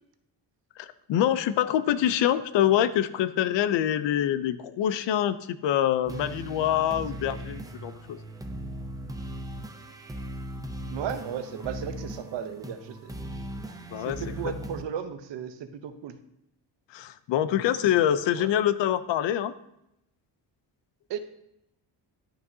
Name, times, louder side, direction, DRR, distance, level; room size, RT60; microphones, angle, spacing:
voice 1, 0.8-8.2 13.9-14.2 16.9-19.5, left 11 dB, 75° left, 14 dB, 0.5 m, -25 dB
sound 1, 6.0-14.8, right 1 dB, 10° right, 0.4 m, -38 dB
voice 2, 10.9-13.1 14.1-16.2 18.3-18.5 21.1-21.2, right 8 dB, 70° right, 9 dB, 0.8 m, -35 dB
11.5 x 5.5 x 2.7 m, 0.81 s
wide cardioid pair, 165°, 44 cm